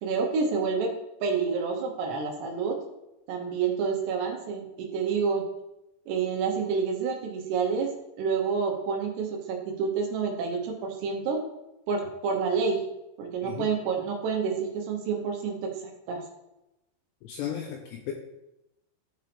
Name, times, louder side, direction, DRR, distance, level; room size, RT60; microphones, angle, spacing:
voice 1, 0.0-0.9 1.2-2.8 3.3-5.4 6.1-7.9 8.2-11.4 11.9-12.8 13.2-15.7 16.1-16.2, right 5 dB, 75° right, 1 dB, 2.9 m, -28 dB
voice 2, 17.2-18.1, left 10 dB, 80° left, 3 dB, 2.5 m, -35 dB
13.5 x 4.5 x 3.4 m, 0.91 s
omnidirectional pair, 5.5 m